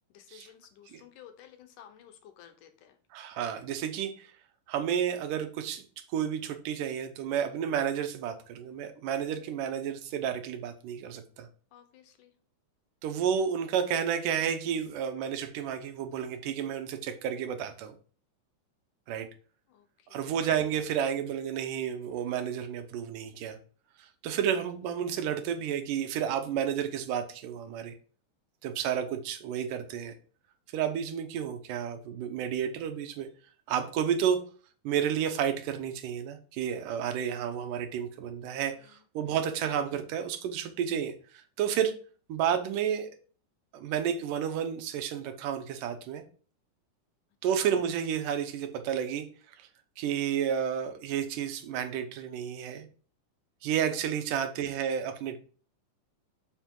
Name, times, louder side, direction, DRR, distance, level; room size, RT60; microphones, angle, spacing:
voice 1, 0.1-3.0 11.7-12.3 19.7-20.3 38.7-39.4 47.4-47.5 54.3-54.5, left 9 dB, 80° left, 2.6 m, -55 dB
voice 2, 3.1-4.3 4.7-11.5 13.0-18.0 19.1-19.3 20.1-23.6 24.0-28.0 28.6-30.2 30.7-33.3 33.7-34.4 34.8-41.9 42.3-43.1 43.7-46.2 47.4-49.3 49.6-49.7 50.0-52.9 53.6-55.4, right 8 dB, 85° right, 2.5 m, -31 dB
7.3 x 6.1 x 3.8 m
omnidirectional pair, 3.7 m